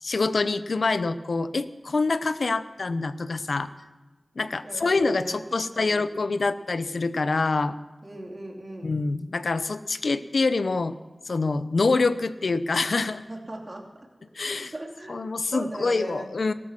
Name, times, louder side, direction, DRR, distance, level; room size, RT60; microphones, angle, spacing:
voice 1, 0.0-3.7 4.4-7.8 8.8-10.9 11.3-13.2 14.3-14.7 15.1-16.5, left 3 dB, 80° left, 13 dB, 0.6 m, -26 dB
voice 2, 4.6-6.4 8.0-8.9 13.1-14.1 14.7-16.3, right 1 dB, 40° right, 1 dB, 2.7 m, -39 dB
14.5 x 12.5 x 6.1 m, 1.2 s
wide cardioid pair, 45°, 0 cm